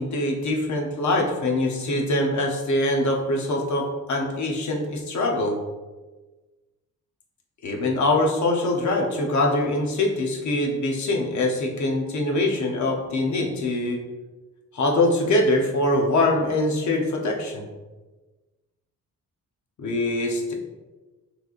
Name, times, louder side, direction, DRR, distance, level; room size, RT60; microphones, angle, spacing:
voice 1, 0.0-5.6 7.6-14.0 14.7-17.7 19.8-20.5, left 2 dB, 55° left, 1 dB, 0.8 m, -23 dB
6.2 x 3.3 x 2.5 m, 1.2 s
wide cardioid pair, 165°, 35 cm